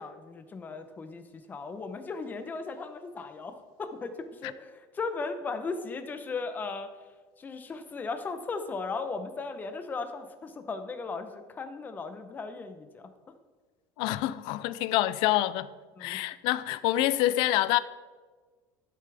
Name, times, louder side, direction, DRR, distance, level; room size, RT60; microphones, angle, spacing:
voice 1, 0.0-6.9 7.4-13.1 16.0-16.2, left 4 dB, 20° left, 0.7 m, -37 dB
voice 2, 14.0-15.7 16.0-17.8, left 15 dB, 60° left, 0.4 m, -26 dB
12.0 x 6.8 x 3.4 m
cardioid pair, 150°, 9 cm